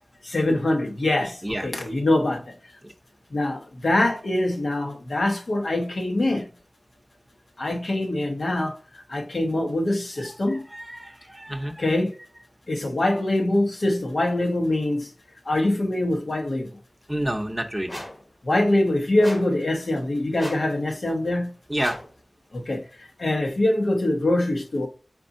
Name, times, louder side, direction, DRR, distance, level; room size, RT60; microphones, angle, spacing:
voice 1, 0.2-2.4 3.3-6.5 7.6-8.7 9.1-10.7 11.8-12.1 12.7-15.1 15.5-16.7 18.4-21.5 22.5-22.8 23.2-24.9, left 1 dB, 80° left, 1.2 m, -24 dB
voice 2, 10.7-11.8 17.1-18.0 21.7-22.0, right 1 dB, 10° right, 0.7 m, -29 dB
sound 1, 17.9-18.3 19.2-19.6 20.4-20.7 21.8-22.2, left 1 dB, 40° left, 1.2 m, -37 dB
4.3 x 4.1 x 2.6 m
wide cardioid pair, 75°, 0 cm